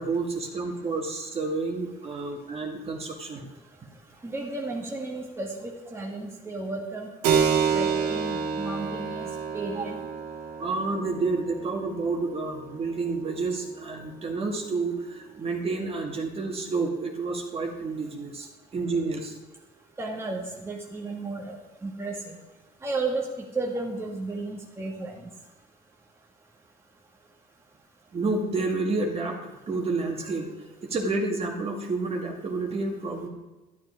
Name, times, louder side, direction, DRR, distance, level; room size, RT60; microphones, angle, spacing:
voice 1, 0.0-3.5 9.8-9.9 10.6-19.4 28.1-33.3, right 3 dB, 35° right, 1 dB, 2.3 m, -30 dB
voice 2, 4.2-7.1 7.7-9.3 9.5-10.0 20.0-21.6 21.8-22.3 22.8-23.3 23.5-25.2, right 3 dB, 15° right, -1 dB, 1.9 m, -33 dB
Keyboard (musical), 7.2-15.4, right 6 dB, 85° right, 2.3 m, -30 dB
12.0 x 11.0 x 5.0 m, 1.1 s
cardioid pair, 110°, 17 cm